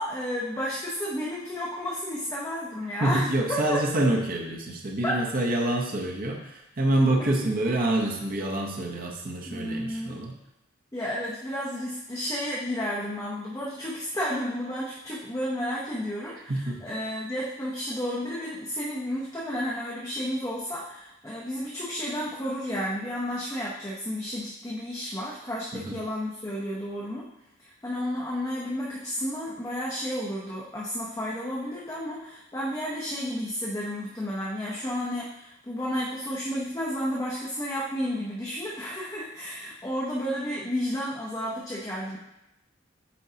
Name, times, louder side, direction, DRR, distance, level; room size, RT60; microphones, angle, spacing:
voice 1, 0.0-3.8 5.0-5.2 7.2-7.3 9.5-10.2 10.9-27.2 27.6-42.2, equal, 15° left, -5 dB, 0.7 m, -32 dB
voice 2, 3.0-10.4 16.5-16.8 25.7-26.0, right 1 dB, 45° right, 0 dB, 0.8 m, -26 dB
8.4 x 4.5 x 2.8 m, 0.88 s
head